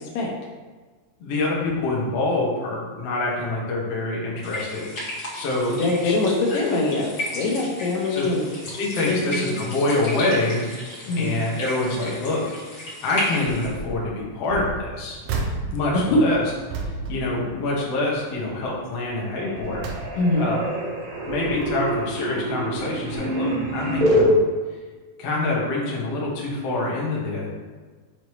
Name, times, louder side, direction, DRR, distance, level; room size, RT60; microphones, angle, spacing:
voice 1, 1.2-5.7 6.0-6.2 8.1-8.3 8.8-10.7 11.1-12.4 13.0-15.2 15.7-16.4 16.8-19.8 20.4-20.6 21.3-24.4 25.2-27.5, left 2 dB, 90° left, -4 dB, 1.3 m, -26 dB
sound 1, 4.4-13.7, left 1 dB, 55° left, 1.2 m, -34 dB
voice 2, 5.7-7.1 7.4-8.5 9.1-9.6 11.1-11.3 15.9-16.2 20.1-20.5, left 2 dB, 75° left, -1 dB, 2.8 m, -23 dB
sound 2, 13.6-14.0 14.4-18.1 18.5-18.8 19.3-20.6 21.1-22.0 22.7-22.9 23.1-23.2, right 3 dB, 85° right, 2.1 m, -34 dB
sound 3, 18.3-18.9 19.1-24.3, right 1 dB, 65° right, 3.6 m, -26 dB
7.6 x 4.8 x 3.1 m, 1.4 s
omnidirectional pair, 5.1 m